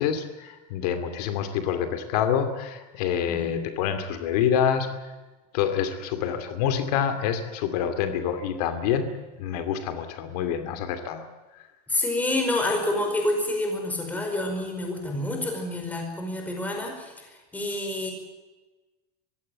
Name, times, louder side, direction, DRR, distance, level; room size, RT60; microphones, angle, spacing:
voice 1, 0.0-4.9 5.5-9.1 9.4-11.3, left 8 dB, 75° left, 9 dB, 2.7 m, -27 dB
voice 2, 11.9-17.1 17.5-18.1, left 1 dB, 10° left, 3 dB, 5.1 m, -28 dB
23.0 x 16.5 x 8.8 m, 1.2 s
cardioid pair, 170°, 20 cm